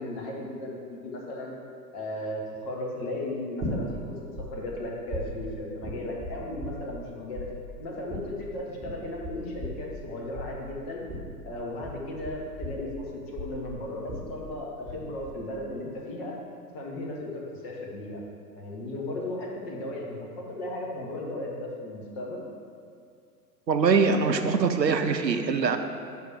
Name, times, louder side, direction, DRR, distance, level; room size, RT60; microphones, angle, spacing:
voice 1, 0.0-1.5 1.9-4.2 4.5-7.5 7.8-11.0 11.4-16.3 16.7-18.2 18.5-22.4, left 1 dB, 35° left, -2 dB, 1.3 m, -36 dB
sound 1, 3.6-4.5 4.7-7.1 7.3-15.0 15.2-15.8, equal, 20° right, 1.3 m, -37 dB
voice 2, 23.7-25.8, right 5 dB, 90° right, 7 dB, 0.6 m, -23 dB
5.3 x 5.0 x 6.2 m, 2.3 s
figure-of-eight pair, 100°, 49 cm